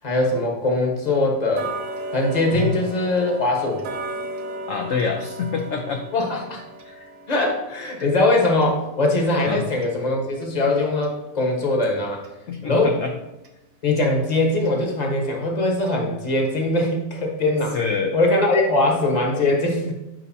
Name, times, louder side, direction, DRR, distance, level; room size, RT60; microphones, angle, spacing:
voice 1, 0.0-1.7 2.1-3.8 6.1-6.6 7.3-12.2 12.6-12.9 13.8-17.8 18.1-19.9, left 2 dB, 25° left, 0 dB, 1.2 m, -21 dB
Tick-tock, 1.5-12.4 12.8-12.9 13.4-13.5 14.0-14.1 14.7-14.8 15.2-15.3 15.9-16.0 16.5-16.6, right 1 dB, 70° right, 1.5 m, -37 dB
voice 2, 4.7-6.0 6.8-7.1 8.0-8.1 9.4-9.6 12.5-13.1 17.7-18.2, left 5 dB, 60° left, 2 dB, 0.9 m, -26 dB
9.1 x 5.2 x 2.7 m, 0.92 s
omnidirectional pair, 1.8 m